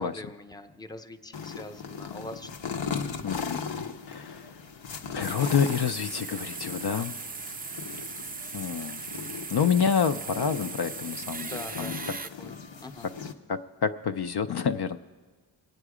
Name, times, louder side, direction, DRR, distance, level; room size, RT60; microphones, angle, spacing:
voice 1, 0.0-2.5 11.4-12.0 12.4-13.1, left 1 dB, 10° left, 8 dB, 0.7 m, -42 dB
sound 1, 1.3-13.3, left 6 dB, 75° left, 0.9 m, -38 dB
voice 2, 3.2-3.6 4.1-4.6 5.1-7.3 8.5-9.0 9.5-12.0 13.5-15.0, left 7 dB, 60° left, 8 dB, 0.5 m, -28 dB
sound 2, 5.2-12.3, right 4 dB, 20° right, 0.3 m, -38 dB
23.0 x 9.0 x 4.9 m, 1.4 s
wide cardioid pair, 75°, 46 cm